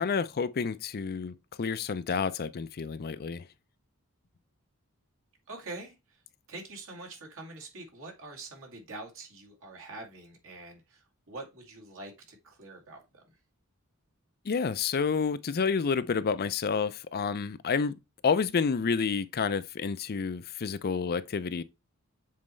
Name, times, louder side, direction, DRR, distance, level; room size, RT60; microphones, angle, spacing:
voice 1, 0.0-3.4 14.5-17.9 18.2-21.6, left 5 dB, 45° left, 0.5 m, -29 dB
voice 2, 5.5-6.2 6.5-13.2, right 2 dB, 65° right, 2.3 m, -45 dB
7.4 x 4.3 x 3.1 m
head